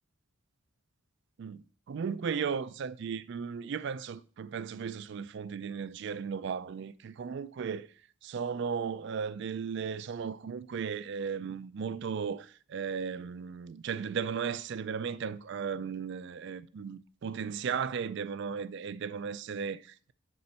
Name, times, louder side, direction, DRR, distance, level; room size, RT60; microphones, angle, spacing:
voice 1, 1.4-7.9 8.2-20.1, right 6 dB, 55° right, 0.3 m, -36 dB
6.7 x 4.3 x 5.5 m
head